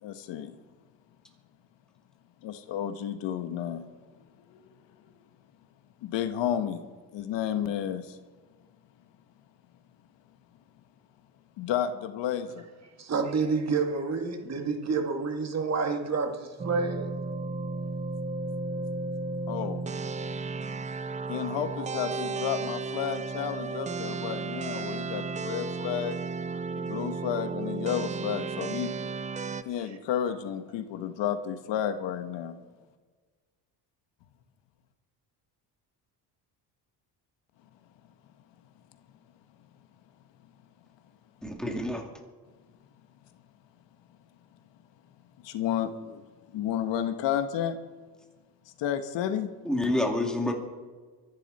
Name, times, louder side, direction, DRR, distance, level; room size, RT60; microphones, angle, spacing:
voice 1, 0.0-0.6 2.4-3.9 4.5-4.6 6.0-6.8 7.1-8.2 11.6-12.7 19.5-19.8 21.3-26.2 26.7-28.9 29.6-32.5 45.4-46.2 46.5-47.8 48.8-49.5, left 9 dB, 85° left, 1.3 m, -31 dB
voice 2, 13.0-17.1 29.4-29.6, right 4 dB, 40° right, 2.0 m, -29 dB
sound 1, 16.6-29.6, right 4 dB, 20° right, 0.4 m, -34 dB
voice 3, 41.4-42.1 49.6-50.5, left 1 dB, ahead, 2.6 m, -28 dB
24.0 x 11.5 x 4.2 m
cardioid pair, 140°, 42 cm